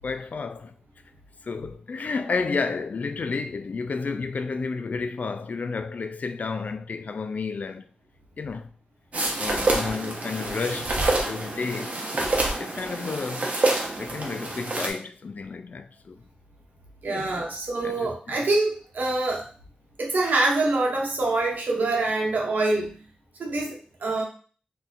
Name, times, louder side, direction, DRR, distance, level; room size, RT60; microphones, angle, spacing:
voice 1, 0.0-0.7 1.4-7.9 8.4-8.7 9.4-12.0 12.6-13.5 14.0-16.2 17.1-17.3 17.8-18.4, left 4 dB, 60° left, 0.3 m, -31 dB
sound 1, 9.1-14.9, right 2 dB, 50° right, 0.8 m, -27 dB
voice 2, 17.0-19.5 20.0-23.0 23.4-24.2, right 2 dB, 75° right, 0.9 m, -25 dB
2.7 x 2.4 x 4.0 m
cardioid pair, 60°, 3 cm